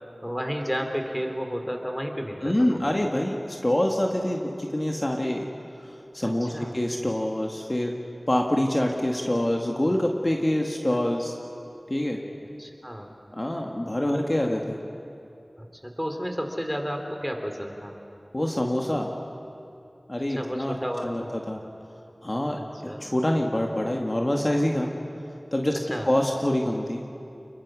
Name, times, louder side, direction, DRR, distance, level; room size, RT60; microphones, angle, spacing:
voice 1, 0.2-2.8 6.2-6.8 10.9-11.0 12.6-13.1 14.1-14.3 15.6-18.0 20.3-21.3 22.8-23.0 25.9-26.1, equal, ahead, 4 dB, 3.2 m, -32 dB
voice 2, 2.4-5.4 5.8-7.9 8.3-11.4 11.9-12.2 13.3-14.8 18.3-19.1 20.1-20.8 21.0-21.6 22.2-22.6 23.0-24.9 25.5-25.8 26.1-27.1, left 1 dB, 35° left, 1 dB, 2.0 m, -26 dB
29.0 x 22.0 x 6.3 m, 2.6 s
wide cardioid pair, 45°, 0 cm